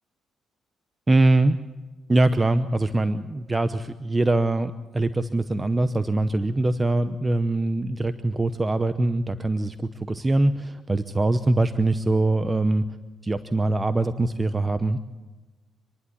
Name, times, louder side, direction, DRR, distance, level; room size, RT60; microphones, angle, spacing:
voice 1, 1.1-1.6 2.1-12.8 13.2-15.0, right 2 dB, 20° right, 11 dB, 0.8 m, -23 dB
26.5 x 11.0 x 9.7 m, 1.2 s
cardioid pair, 90°, 0 cm